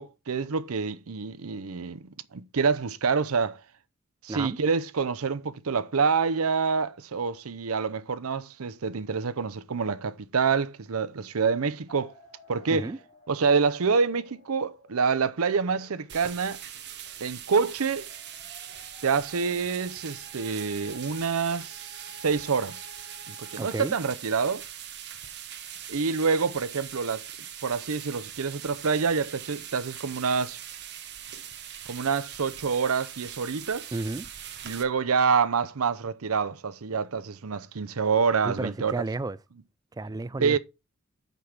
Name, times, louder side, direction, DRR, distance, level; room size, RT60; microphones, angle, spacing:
voice 1, 0.0-3.6 4.2-12.1 12.5-12.9 13.3-16.6 17.2-18.1 19.0-22.9 23.3-24.6 25.9-27.2 27.6-30.6 31.9-33.9 34.6-38.9 40.4-40.6, right 5 dB, 85° right, 0.7 m, -27 dB
sound 1, 11.9-23.7, equal, 30° left, 2.7 m, -53 dB
sound 2, 16.1-34.8, right 10 dB, 55° right, 1.0 m, -42 dB
voice 2, 23.6-23.9 33.9-34.3 38.4-39.4 40.0-40.6, right 2 dB, 15° right, 0.3 m, -32 dB
6.4 x 5.3 x 5.9 m
head